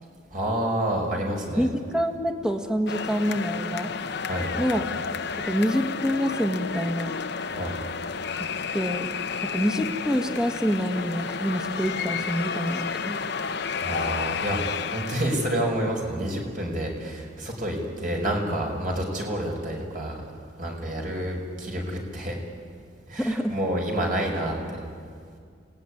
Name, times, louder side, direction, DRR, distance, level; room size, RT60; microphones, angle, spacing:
voice 1, 0.3-1.7 4.2-4.7 7.5-7.8 13.8-14.6 14.9-20.2 20.6-22.4 23.1-24.9, right 1 dB, 45° right, 1 dB, 5.5 m, -29 dB
voice 2, 1.6-3.9 4.6-4.8 5.4-7.2 8.4-8.5 8.7-9.1 9.4-13.2 23.2-23.6, equal, 5° right, 3 dB, 1.7 m, -26 dB
sound 1, 2.9-15.8, left 5 dB, 60° left, 1.0 m, -31 dB
29.0 x 18.5 x 10.0 m, 2.1 s
head